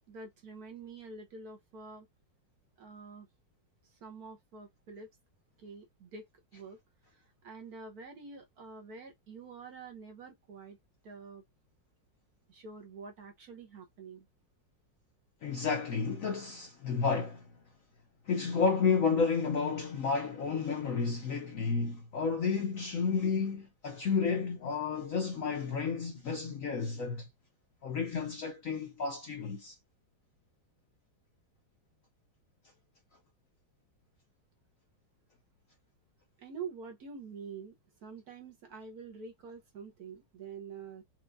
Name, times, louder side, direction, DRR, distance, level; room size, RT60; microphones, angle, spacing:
voice 1, 0.1-2.1 2.8-3.3 3.9-5.1 5.6-6.3 6.5-6.8 7.1-10.8 11.0-11.4 12.5-14.3 36.4-37.7 38.0-41.0, right 5 dB, 60° right, 1.2 m, -47 dB
voice 2, 15.4-17.5 18.3-27.3 27.8-29.8, left 5 dB, 60° left, 0.9 m, -31 dB
4.3 x 2.5 x 2.6 m
omnidirectional pair, 2.1 m